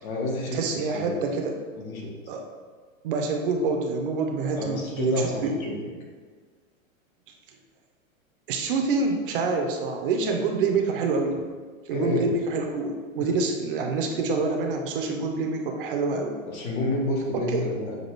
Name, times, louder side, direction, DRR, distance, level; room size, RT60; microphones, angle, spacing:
voice 1, 0.0-1.2 1.8-2.1 4.6-5.7 11.9-12.3 13.2-13.3 16.5-18.0, left 1 dB, 85° left, -1 dB, 1.3 m, -29 dB
voice 2, 0.5-1.6 2.3-2.4 3.0-5.5 8.5-11.4 11.9-16.3 17.3-17.7, right 4 dB, 40° right, 3 dB, 0.5 m, -26 dB
6.5 x 2.3 x 3.1 m, 1.5 s
hypercardioid pair, 150°, 41 cm